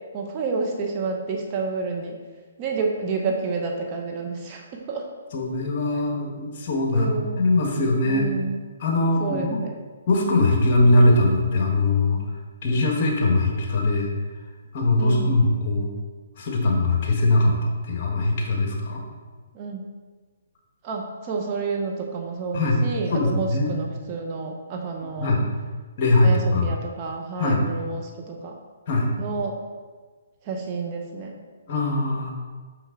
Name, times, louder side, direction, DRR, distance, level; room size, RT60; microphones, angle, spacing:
voice 1, 0.1-2.2 2.6-5.1 6.9-7.4 8.0-8.7 9.2-9.8 15.0-15.4 19.5-19.8 20.8-25.4 26.2-28.5 29.2-29.6 30.4-31.4, right 4 dB, 35° right, 1 dB, 0.9 m, -29 dB
voice 2, 5.3-7.1 7.4-8.3 8.8-9.6 10.1-12.2 12.6-14.1 14.7-15.9 16.4-19.0 22.5-22.8 23.1-23.8 25.2-25.4 26.0-26.7 27.4-27.6 28.9-29.1 31.7-32.3, left 2 dB, 45° left, 1 dB, 1.4 m, -21 dB
5.9 x 5.7 x 3.7 m, 1.4 s
hypercardioid pair, 140°, 0 cm